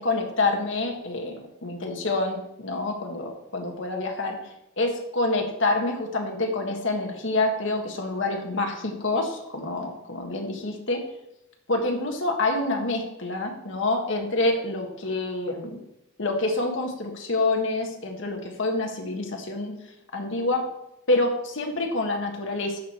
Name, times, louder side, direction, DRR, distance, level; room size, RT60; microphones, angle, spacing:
voice 1, 0.0-4.4 4.8-11.0 11.7-15.8 16.2-19.7 20.1-20.6 21.1-22.8, left 2 dB, 65° left, 2 dB, 1.5 m, -27 dB
12.5 x 4.8 x 4.3 m, 0.84 s
head